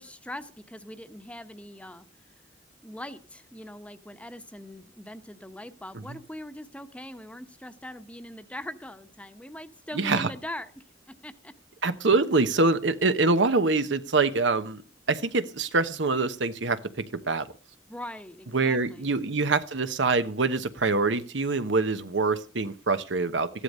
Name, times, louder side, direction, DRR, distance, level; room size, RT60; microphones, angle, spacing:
voice 1, 0.0-2.1 2.8-11.5 17.9-19.1, left 1 dB, 5° left, 9 dB, 1.0 m, -42 dB
voice 2, 9.9-10.3 11.8-14.8 15.1-17.5 18.5-23.6, right 3 dB, 85° right, 11 dB, 1.0 m, -25 dB
14.5 x 11.5 x 5.4 m, 0.38 s
head